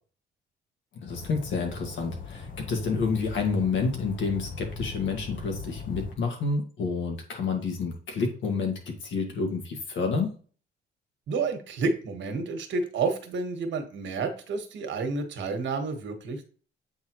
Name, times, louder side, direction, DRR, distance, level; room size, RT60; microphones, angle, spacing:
voice 1, 1.0-10.4, left 4 dB, 70° left, 3 dB, 1.9 m, -29 dB
sound 1, 1.1-6.1, left 4 dB, 45° left, 1.1 m, -40 dB
voice 2, 11.3-16.4, right 4 dB, 65° right, 6 dB, 1.5 m, -30 dB
8.1 x 3.8 x 3.0 m, 0.39 s
cardioid pair, 90°, 20 cm